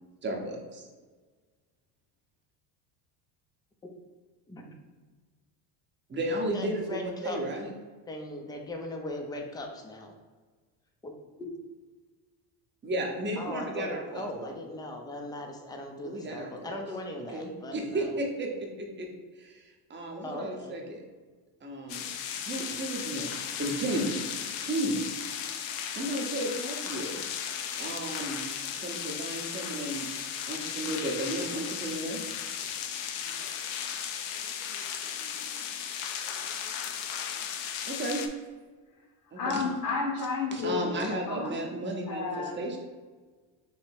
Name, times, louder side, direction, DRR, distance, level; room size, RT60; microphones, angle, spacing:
voice 1, 0.2-0.9 6.1-7.7 12.8-14.6 16.0-16.8 17.3-19.1 19.4-21.0 21.6-22.1 22.4-24.1 24.6-25.0 25.9-27.3 27.7-30.1 30.5-32.4 37.9-38.2 39.3-39.6 40.5-42.8, right 1 dB, 20° right, 1 dB, 0.8 m, -34 dB
voice 2, 6.3-7.4 8.1-10.1 11.0-11.5 13.4-18.2 20.2-20.7, left 1 dB, 10° left, 2 dB, 0.5 m, -39 dB
sound 1, 21.9-38.3, left 8 dB, 85° left, 0.6 m, -36 dB
voice 3, 39.3-41.7 42.1-42.8, left 4 dB, 45° left, -1 dB, 0.8 m, -32 dB
3.2 x 2.8 x 4.5 m, 1.4 s
supercardioid pair, 105°, 50 cm